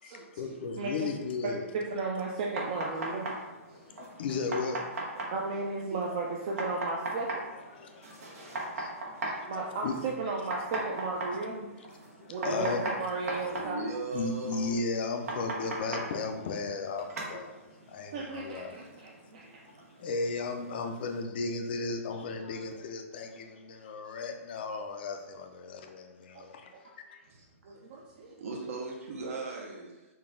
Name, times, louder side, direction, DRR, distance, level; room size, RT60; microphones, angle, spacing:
voice 1, 0.0-1.7 3.8-5.3 7.5-10.0 12.1-12.8 14.1-18.7 20.0-26.7 27.1-27.2, left 4 dB, 45° left, 5 dB, 0.4 m, -36 dB
voice 2, 0.8-1.1 1.4-3.4 3.7-3.8 5.3-7.3 7.6-7.7 9.2-11.7 12.3-13.8 18.1-19.5 26.3-26.5 27.6-28.3, right 3 dB, 30° right, -2 dB, 0.3 m, -35 dB
sound 1, 2.2-21.2, right 2 dB, 90° right, 1.1 m, -40 dB
voice 3, 13.3-14.8 27.2-27.8 28.2-30.1, right 3 dB, 70° right, -2 dB, 0.7 m, -39 dB
3.8 x 2.2 x 3.6 m, 1.1 s
hypercardioid pair, 170°, 8 cm